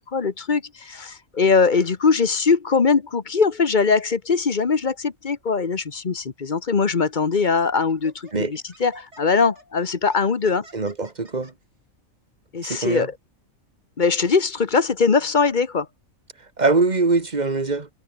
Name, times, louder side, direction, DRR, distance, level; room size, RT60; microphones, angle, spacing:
voice 1, 0.1-8.1 8.4-10.6 12.5-13.1 14.0-15.9, left 5 dB, 40° left, 1.2 m, -21 dB
Laughter, 7.0-7.2 7.9-11.5, right 1 dB, 55° right, 7.7 m, -50 dB
voice 2, 10.7-11.5 12.6-13.1 16.6-17.9, right 3 dB, 30° right, 1.9 m, -22 dB
omnidirectional pair, 1.4 m